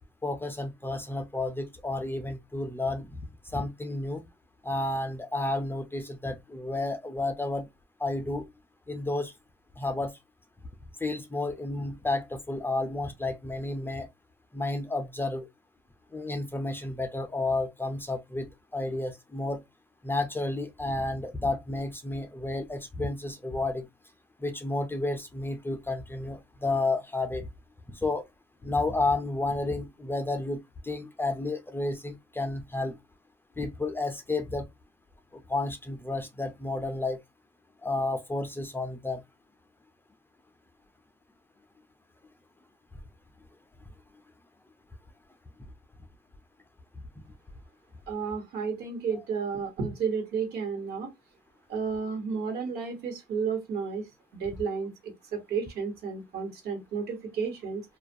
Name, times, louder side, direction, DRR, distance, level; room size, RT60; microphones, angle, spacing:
voice 1, 0.2-3.2 3.5-4.2 4.6-7.7 8.0-8.5 8.9-9.3 9.8-10.1 11.0-14.1 14.5-15.5 16.1-19.6 20.0-23.9 24.4-27.5 28.0-28.2 28.6-32.9 33.6-34.7 35.3-37.2 37.8-39.2, left 2 dB, 15° left, 0.4 m, -31 dB
voice 2, 48.1-51.1 51.7-54.1 54.3-57.8, right 5 dB, 70° right, 1.1 m, -32 dB
2.3 x 2.1 x 2.6 m
cardioid pair, 110°, 17 cm